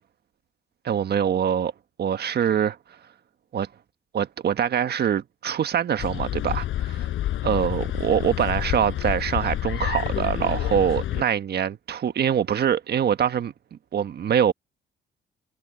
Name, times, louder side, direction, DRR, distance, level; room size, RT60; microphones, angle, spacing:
voice 1, 0.8-1.7 2.0-2.8 3.5-3.7 4.1-7.1 7.4-13.5 13.9-14.5, right 9 dB, 55° right, 1.5 m, -24 dB
sound 1, 6.0-11.2, left 13 dB, 80° left, 6.5 m, -28 dB
cardioid pair, 90°, 20 cm